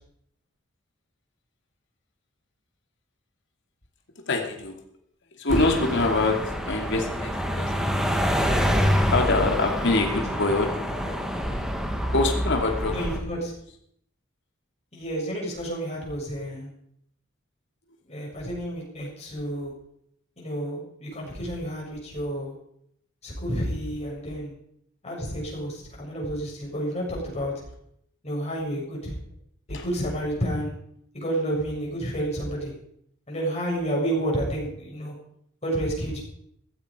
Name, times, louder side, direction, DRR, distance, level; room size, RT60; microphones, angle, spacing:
voice 1, 4.3-4.8 5.4-8.2 9.1-11.2 12.1-13.1 29.7-29.8, left 2 dB, 60° left, 3 dB, 2.7 m, -25 dB
sound 1, 5.5-13.2, equal, 5° right, 2.2 m, -26 dB
voice 2, 12.9-13.5 14.9-16.7 18.1-19.7 20.4-22.5 23.2-24.6 25.0-27.6 28.2-29.1 29.7-30.7 31.1-32.7 33.3-35.1 35.6-36.2, right 1 dB, 30° left, -2 dB, 7.1 m, -30 dB
16.0 x 15.5 x 5.1 m, 0.70 s
head